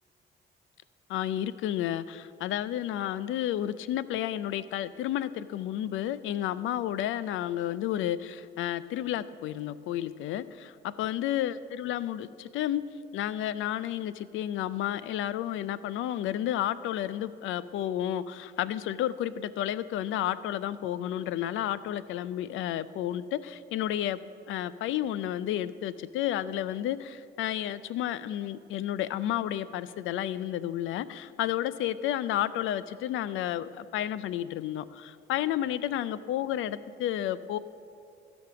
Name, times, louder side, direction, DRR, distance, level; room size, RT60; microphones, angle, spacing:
voice 1, 1.1-12.8 13.1-24.2 24.5-37.6, left 12 dB, 85° left, 16 dB, 0.4 m, -31 dB
13.5 x 5.3 x 6.8 m, 2.7 s
cardioid pair, 90°, 20 cm